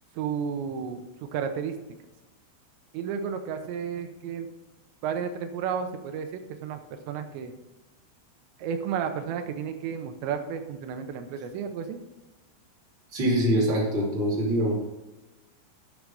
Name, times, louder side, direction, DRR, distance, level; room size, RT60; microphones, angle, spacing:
voice 1, 0.2-1.8 2.9-4.5 5.0-7.5 8.6-12.0, right 7 dB, 80° right, 6 dB, 2.7 m, -32 dB
voice 2, 13.1-14.7, equal, 30° right, -4 dB, 2.6 m, -24 dB
11.5 x 4.8 x 6.8 m, 1.0 s
omnidirectional pair, 5.8 m